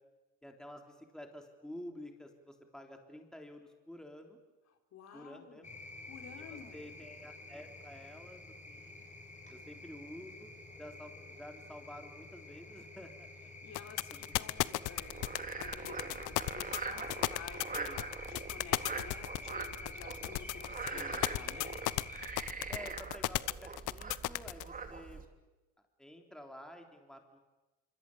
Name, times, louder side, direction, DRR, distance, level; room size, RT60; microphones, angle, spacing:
voice 1, 0.4-4.4 5.1-5.7 6.4-9.0 9.5-13.3 13.7-14.4 14.7-14.9 17.7-18.1 20.9-21.3 22.7-25.2 26.0-27.4, left 1 dB, ahead, 3 dB, 3.5 m, -51 dB
voice 2, 4.9-5.7 6.1-6.9 13.6-21.8, left 7 dB, 60° left, 5 dB, 4.3 m, -52 dB
sound 1, 5.6-22.4, left 3 dB, 25° left, 6.8 m, -49 dB
sound 2, 13.7-24.6, left 19 dB, 75° left, 0.8 m, -34 dB
Frog, 15.0-25.3, right 4 dB, 25° right, 3.0 m, -43 dB
26.0 x 25.5 x 8.7 m, 1.1 s
cardioid pair, 105°, 31 cm